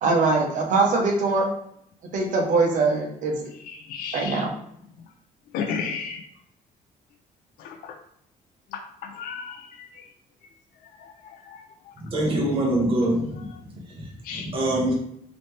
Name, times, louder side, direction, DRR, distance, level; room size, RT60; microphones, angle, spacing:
voice 1, 0.0-1.5 2.1-3.5 4.1-4.5, right 3 dB, 60° right, 1 dB, 1.0 m, -22 dB
voice 2, 3.7-4.4 5.5-6.2 7.6-7.9 9.1-9.9 11.5-11.6 14.3-14.5, left 6 dB, 85° left, 4 dB, 0.5 m, -33 dB
voice 3, 12.1-13.5 14.0-14.1 14.3-14.9, right 1 dB, 40° right, -3 dB, 1.2 m, -24 dB
4.1 x 2.8 x 3.2 m, 0.71 s
cardioid pair, 160°, 15 cm